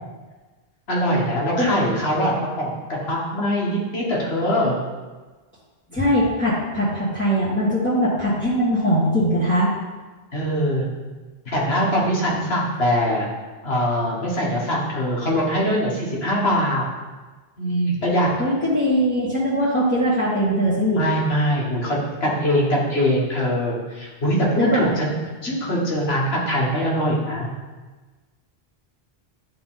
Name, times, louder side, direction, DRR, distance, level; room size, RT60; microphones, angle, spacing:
voice 1, 0.9-4.8 10.3-10.9 11.4-13.3 13.6-16.8 17.6-18.3 20.9-25.1 25.4-27.5, equal, 80° left, -3 dB, 1.8 m, -22 dB
voice 2, 5.9-9.7 18.4-21.0 24.6-24.8 25.5-25.6, equal, 10° left, -10 dB, 1.6 m, -21 dB
11.0 x 3.9 x 3.8 m, 1.3 s
omnidirectional pair, 1.0 m